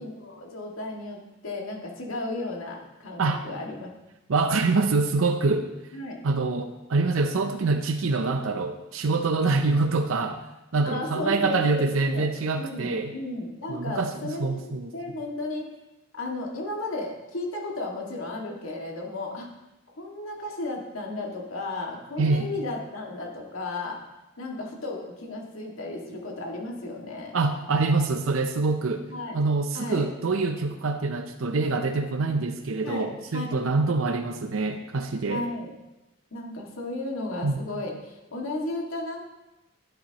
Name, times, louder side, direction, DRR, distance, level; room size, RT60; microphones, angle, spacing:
voice 1, 0.0-3.9 5.9-6.2 10.8-12.3 12.6-15.7 16.1-19.5 20.0-24.0 24.4-27.4 29.1-29.4 29.7-30.1 32.8-33.6 35.3-35.8 36.3-39.2, left 2 dB, 80° left, 0 dB, 2.0 m, -34 dB
voice 2, 4.3-5.7 6.2-10.4 10.7-13.1 13.7-14.9 22.2-22.5 27.3-29.0 29.3-35.4 37.4-37.6, right 3 dB, 75° right, 7 dB, 0.6 m, -25 dB
11.5 x 10.0 x 2.9 m, 1.0 s
head